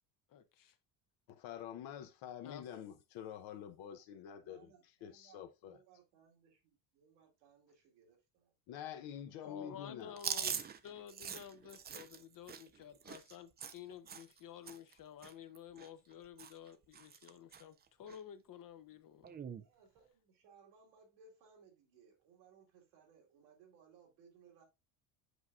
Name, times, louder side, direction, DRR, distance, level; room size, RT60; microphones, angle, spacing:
voice 1, 0.3-0.7 2.4-2.6 9.4-19.4, left 9 dB, 40° left, 0.8 m, -52 dB
voice 2, 1.3-4.7 5.0-5.8 8.7-10.1, left 9 dB, 65° left, 0.9 m, -47 dB
voice 3, 4.4-8.5 9.1-9.4 19.6-24.6, right 6 dB, 80° right, 2.1 m, -65 dB
Chewing mastication, 10.2-14.4 14.7-14.9 15.2-16.1 16.4-16.7 16.9-17.6 18.1-18.2 19.2-19.6, right 7 dB, 20° right, 0.4 m, -43 dB
8.1 x 4.8 x 2.5 m
supercardioid pair, 80°, 50 cm